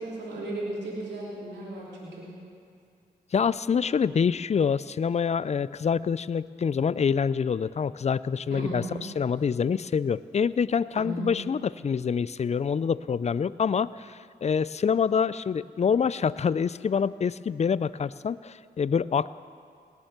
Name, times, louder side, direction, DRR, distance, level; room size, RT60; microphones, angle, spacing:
voice 1, 0.0-2.3 8.5-9.0 10.9-11.3, right 2 dB, 80° right, -5 dB, 3.1 m, -35 dB
voice 2, 3.3-19.3, left 6 dB, 40° left, 18 dB, 0.4 m, -26 dB
18.5 x 7.4 x 6.6 m, 2.3 s
supercardioid pair, 40°, 18 cm